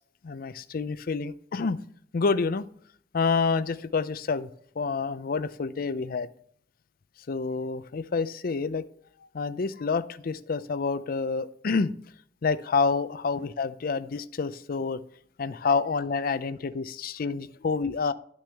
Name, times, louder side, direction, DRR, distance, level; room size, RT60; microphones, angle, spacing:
voice 1, 0.2-1.8 2.1-2.7 3.1-4.5 4.8-6.3 7.3-8.9 9.3-11.9 12.4-15.0 15.4-18.1, left 4 dB, 50° left, 15 dB, 0.4 m, -28 dB
11.5 x 6.1 x 3.4 m, 0.63 s
head